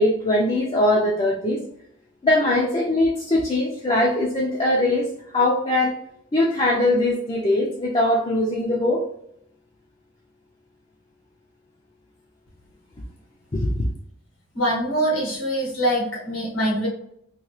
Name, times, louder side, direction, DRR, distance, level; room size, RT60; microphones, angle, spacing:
voice 1, 0.0-1.6 2.2-5.1 5.3-5.9 6.3-9.0 13.5-13.9, left 1 dB, 25° left, -4 dB, 0.5 m, -21 dB
voice 2, 14.5-16.9, right 1 dB, 80° left, -3 dB, 1.5 m, -23 dB
2.9 x 2.7 x 3.1 m, 0.71 s
head